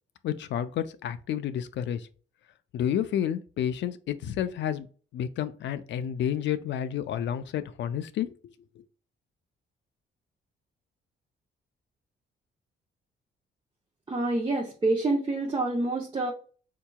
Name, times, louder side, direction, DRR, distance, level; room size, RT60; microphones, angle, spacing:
voice 1, 0.2-2.1 2.7-4.9 5.1-8.5, left 10 dB, 65° left, 0.4 m, -30 dB
voice 2, 14.1-16.3, right 2 dB, 25° right, 0.7 m, -27 dB
4.5 x 2.9 x 2.2 m
cardioid pair, 90°, 20 cm